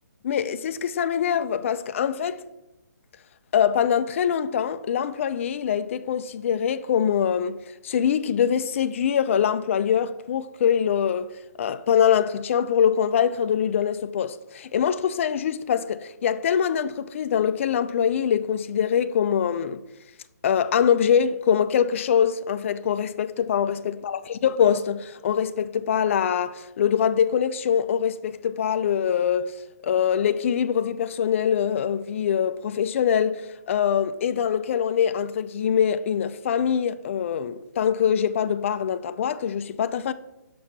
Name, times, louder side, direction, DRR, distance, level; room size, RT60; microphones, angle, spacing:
voice 1, 0.2-2.4 3.5-7.6 7.8-11.3 11.6-19.8 20.4-29.6 29.8-33.4 33.7-40.1, left 8 dB, 45° left, 0.4 m, -23 dB
6.2 x 4.5 x 6.0 m
figure-of-eight pair, 145°, 10 cm